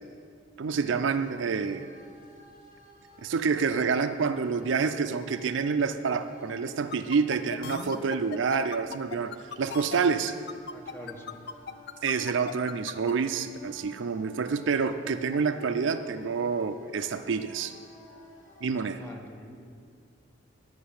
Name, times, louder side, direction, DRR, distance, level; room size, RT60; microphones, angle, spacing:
voice 1, 0.6-1.9 3.2-10.4 12.0-17.7 18.6-19.0, right 5 dB, 65° right, 10 dB, 0.4 m, -28 dB
sound 1, 0.7-18.7, left 1 dB, 40° left, 1.8 m, -54 dB
sound 2, 6.9-13.1, left 6 dB, 55° left, 0.4 m, -38 dB
voice 2, 10.7-11.4 18.9-19.6, equal, 10° left, 0 dB, 1.3 m, -45 dB
9.4 x 6.2 x 8.6 m, 2.2 s
head